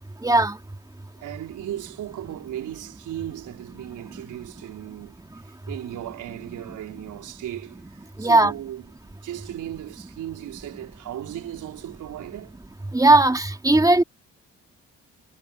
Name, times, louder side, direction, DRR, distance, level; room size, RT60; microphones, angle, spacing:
voice 1, 0.2-0.5 8.2-8.5 12.9-14.0, right 2 dB, 10° right, 3.0 m, -17 dB
voice 2, 1.2-5.2 5.7-7.8 8.2-12.6, right 12 dB, 80° right, 4.8 m, -36 dB
cardioid pair, 90°, 30 cm